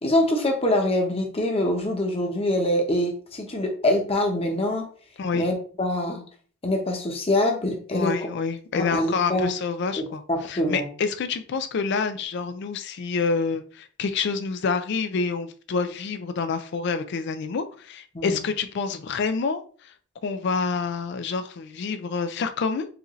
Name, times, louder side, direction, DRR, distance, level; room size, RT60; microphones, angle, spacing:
voice 1, 0.0-4.8 5.3-6.2 6.6-8.3 8.7-9.5 10.0-10.1 10.3-10.9 18.1-18.4, left 1 dB, 30° left, 2 dB, 0.8 m, -24 dB
voice 2, 7.9-10.2 10.5-19.9 20.2-22.9, left 5 dB, 55° left, 9 dB, 0.4 m, -27 dB
4.8 x 2.5 x 3.1 m, 0.42 s
head